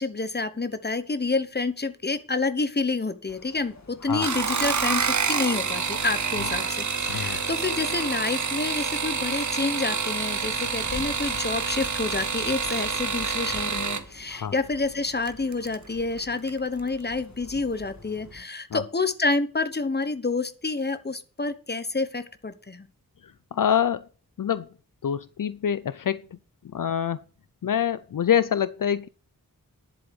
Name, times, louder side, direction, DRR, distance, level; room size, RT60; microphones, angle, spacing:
voice 1, 0.0-22.9, left 3 dB, 30° left, 11 dB, 1.1 m, -28 dB
sound 1, 3.3-18.4, left 3 dB, 50° left, 2.0 m, -47 dB
sound 2, 4.1-14.1 15.3-15.8 16.2-16.6 16.9-17.0, right 5 dB, 55° right, 0.9 m, -28 dB
voice 2, 7.1-7.4 14.3-14.5 18.7-18.8 23.2-24.1 24.4-24.7 25.0-26.4 26.6-27.2 27.6-29.1, left 9 dB, 65° left, 15 dB, 0.5 m, -26 dB
10.5 x 8.0 x 5.3 m, 0.38 s
wide cardioid pair, 80°, 35 cm